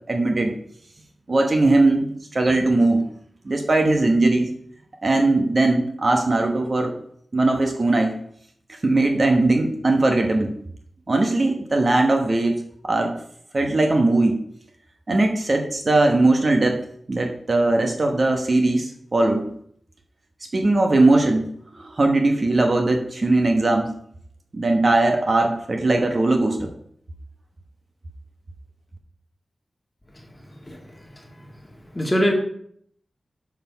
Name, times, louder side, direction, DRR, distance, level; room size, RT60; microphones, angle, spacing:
voice 1, 0.1-0.5 1.3-3.0 3.4-4.5 5.0-6.9 7.3-8.1 8.8-10.5 11.1-13.1 13.5-14.4 15.1-16.8 17.1-19.4 20.5-21.4 21.8-23.9 24.5-26.7, right 2 dB, 45° right, 4 dB, 1.1 m, -19 dB
voice 2, 30.1-31.5 31.9-32.3, equal, 15° left, 0 dB, 2.0 m, -26 dB
6.7 x 5.9 x 5.8 m, 0.65 s
wide cardioid pair, 95°, 0 cm